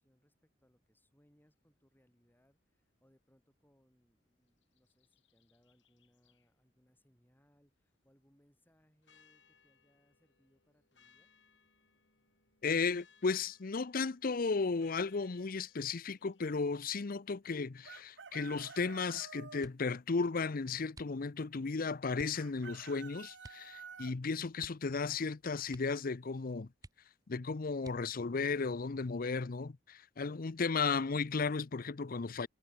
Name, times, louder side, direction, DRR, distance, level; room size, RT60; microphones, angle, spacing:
voice 1, 0.0-11.3, equal, 10° left, 7.8 m, -72 dB
sound 1, 4.5-6.5 9.0-16.7, left 6 dB, 75° left, 7.6 m, -69 dB
voice 2, 12.6-26.7 27.3-32.5, left 4 dB, 50° left, 0.6 m, -35 dB
Chicken rooster, 17.8-19.7 22.3-24.1, right 5 dB, 80° right, 1.2 m, -50 dB
sound 2, 19.6-20.0 20.9-21.5 22.1-22.5 23.4-23.8 24.0-24.1 24.6-25.3 25.7-26.1 26.4-26.5 26.8-27.3 27.8-28.3 29.0-29.7 30.0-30.4, right 2 dB, 20° right, 0.8 m, -57 dB
head